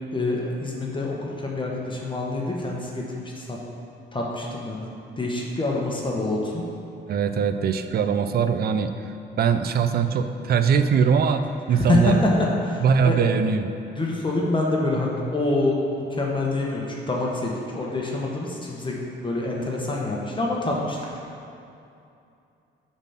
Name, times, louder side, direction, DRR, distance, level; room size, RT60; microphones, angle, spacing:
voice 1, 0.0-3.6 4.1-4.9 5.2-6.6 11.7-12.3 12.6-13.2 14.0-21.0, left 2 dB, 25° left, -2 dB, 1.2 m, -26 dB
voice 2, 7.1-8.9 9.4-12.2 12.8-13.7, right 6 dB, 50° right, 9 dB, 0.5 m, -21 dB
7.0 x 4.2 x 5.7 m, 2.6 s
cardioid pair, 90°, 20 cm